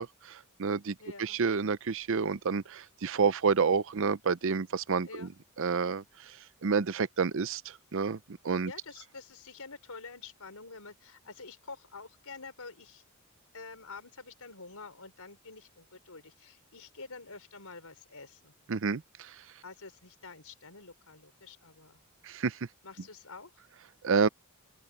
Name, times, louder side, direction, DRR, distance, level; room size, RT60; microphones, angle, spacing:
voice 1, 0.0-5.3 5.6-6.0 6.6-7.6 7.9-8.7 18.7-19.3 22.2-22.6 24.0-24.3, right 5 dB, 60° right, 0.6 m, -29 dB
voice 2, 1.0-1.4 5.0-5.3 8.6-13.0 13.5-18.6 19.6-22.0 22.8-23.6, left 4 dB, 75° left, 4.9 m, -48 dB
open air
head